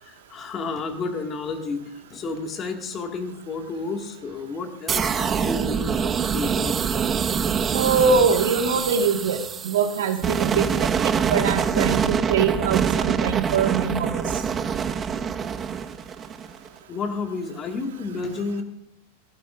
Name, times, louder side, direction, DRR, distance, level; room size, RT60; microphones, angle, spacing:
voice 1, 0.0-7.3 16.9-18.6, left 4 dB, 25° left, 4 dB, 2.1 m, -31 dB
sound 1, 4.9-16.7, right 7 dB, 20° right, 0.7 m, -25 dB
voice 2, 7.7-9.4 9.6-10.9 11.3-14.2, right 5 dB, 60° right, 5 dB, 1.7 m, -23 dB
18.5 x 17.0 x 2.6 m, 0.78 s
figure-of-eight pair, 90°, 0 cm